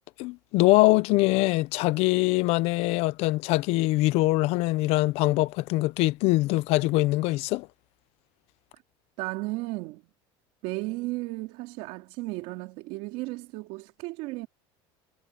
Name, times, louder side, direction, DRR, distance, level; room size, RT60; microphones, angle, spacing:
voice 1, 0.2-7.7, left 20 dB, 60° left, 0.7 m, -23 dB
voice 2, 9.2-10.1 10.6-14.5, right 21 dB, 70° right, 3.6 m, -34 dB
cardioid pair, 150°, 12 cm